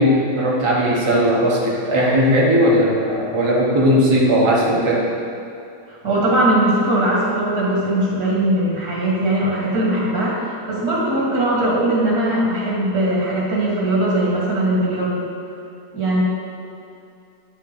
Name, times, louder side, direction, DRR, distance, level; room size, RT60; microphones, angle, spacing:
voice 1, 0.0-5.1, equal, 20° right, -5 dB, 0.9 m, -17 dB
voice 2, 5.9-15.2 15.9-16.2, right 1 dB, 60° right, -5 dB, 2.6 m, -20 dB
10.0 x 3.7 x 6.1 m, 2.6 s
omnidirectional pair, 1.8 m